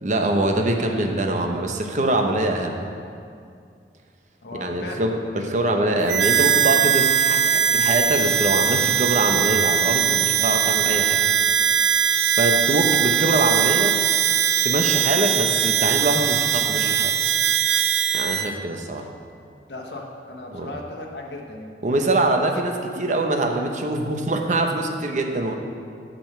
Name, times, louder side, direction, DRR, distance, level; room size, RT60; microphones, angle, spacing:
voice 1, 0.0-2.7 4.6-11.2 12.4-14.0 14.6-17.1 18.1-19.1 20.5-20.7 21.8-25.5, right 2 dB, 45° right, 3 dB, 0.8 m, -23 dB
voice 2, 4.4-5.1 19.7-21.7, left 2 dB, 75° left, 0 dB, 1.2 m, -36 dB
Harmonica, 6.1-18.5, right 9 dB, 90° right, 0.4 m, -20 dB
8.9 x 5.3 x 6.6 m, 2.3 s
head